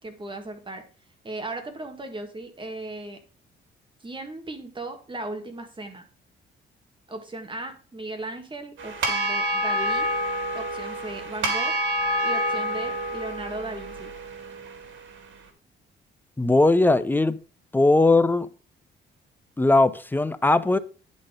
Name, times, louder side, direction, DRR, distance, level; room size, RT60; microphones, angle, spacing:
voice 1, 0.0-0.8 1.2-3.2 4.0-6.0 7.1-10.1 10.5-11.7 12.2-14.1, right 2 dB, 25° right, 1.8 m, -36 dB
sound 1, 8.8-15.2, equal, 70° right, 2.0 m, -28 dB
voice 2, 16.4-17.4 17.7-18.5 19.6-20.8, left 2 dB, 10° left, 0.6 m, -19 dB
10.0 x 4.2 x 5.0 m
cardioid pair, 90°, 20 cm